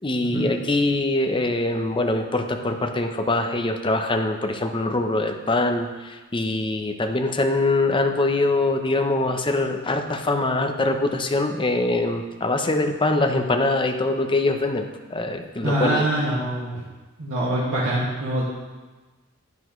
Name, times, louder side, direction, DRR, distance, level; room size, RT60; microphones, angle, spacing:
voice 1, 0.0-16.1, left 2 dB, 25° left, 5 dB, 0.7 m, -23 dB
voice 2, 15.6-16.8 17.2-18.4, right 1 dB, 70° right, -7 dB, 1.9 m, -24 dB
10.5 x 10.0 x 3.2 m, 1.3 s
head